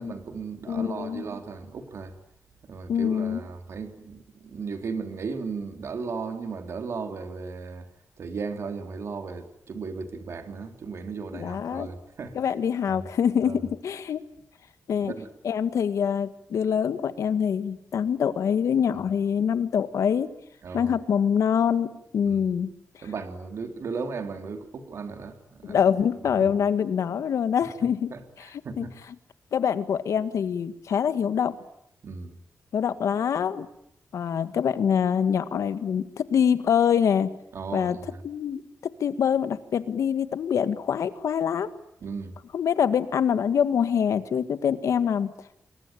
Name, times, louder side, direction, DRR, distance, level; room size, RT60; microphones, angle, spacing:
voice 1, 0.0-2.1 2.6-7.9 8.2-12.4 12.9-13.0 13.4-13.5 15.0-15.3 20.6-20.9 22.2-22.4 23.0-25.8 26.4-26.5 28.1-28.9 32.0-32.4 37.5-38.2 42.0-42.3, right 4 dB, 60° right, 6 dB, 3.5 m, -36 dB
voice 2, 0.7-1.2 2.9-3.4 11.3-11.9 12.4-14.3 14.9-15.1 15.4-20.3 20.7-22.7 25.6-28.5 28.8-28.9 29.5-31.6 32.7-33.7 34.1-37.3 37.7-38.0 38.2-41.7 42.5-45.3, left 8 dB, 80° left, 12 dB, 1.7 m, -25 dB
28.0 x 22.5 x 9.2 m, 0.74 s
wide cardioid pair, 170°, 5 cm